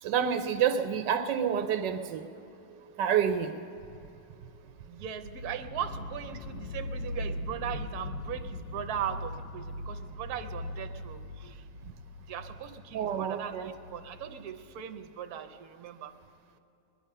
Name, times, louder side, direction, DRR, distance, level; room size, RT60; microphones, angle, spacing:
voice 1, 0.0-2.2 2.7-3.6 12.9-13.7, right 8 dB, 80° right, 9 dB, 1.3 m, -28 dB
voice 2, 4.9-11.6 12.2-16.1, right 9 dB, 65° right, 7 dB, 1.2 m, -39 dB
sound 1, 5.2-15.0, left 2 dB, 90° left, 1.3 m, -40 dB
20.5 x 10.5 x 5.5 m, 2.9 s
omnidirectional pair, 1.9 m